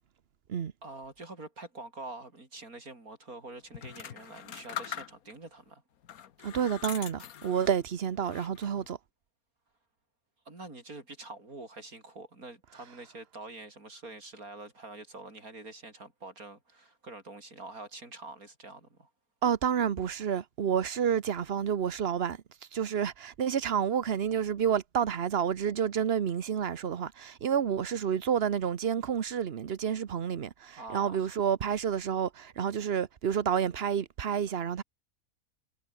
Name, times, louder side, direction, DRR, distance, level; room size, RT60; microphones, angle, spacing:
voice 1, 0.8-5.8 10.5-19.1 30.8-31.4, right 2 dB, 80° right, 5.7 m, -46 dB
sound 1, 3.7-5.5 6.0-7.8 8.2-8.9, left 9 dB, 80° left, 1.5 m, -42 dB
voice 2, 6.4-9.0 19.4-22.4 22.7-34.8, right 8 dB, 50° right, 1.1 m, -29 dB
omnidirectional pair, 1.5 m